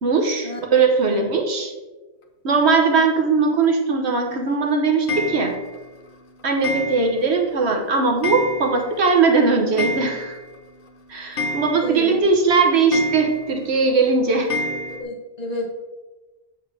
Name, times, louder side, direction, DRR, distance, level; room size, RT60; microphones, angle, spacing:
voice 1, 0.0-1.7 2.4-5.5 6.4-10.4 11.1-14.5, right 4 dB, 80° right, 3 dB, 1.3 m, -19 dB
Clock, 5.1-5.8 6.6-7.4 7.7-7.8 8.2-9.0 9.3-9.4 9.6-10.6 10.9-11.0 11.4-12.2 12.9-13.6 14.5-15.0, left 2 dB, 55° left, 1.0 m, -29 dB
voice 2, 11.8-12.2 15.0-15.7, equal, 40° left, 1 dB, 1.2 m, -30 dB
7.3 x 6.7 x 3.3 m, 1.2 s
omnidirectional pair, 1.1 m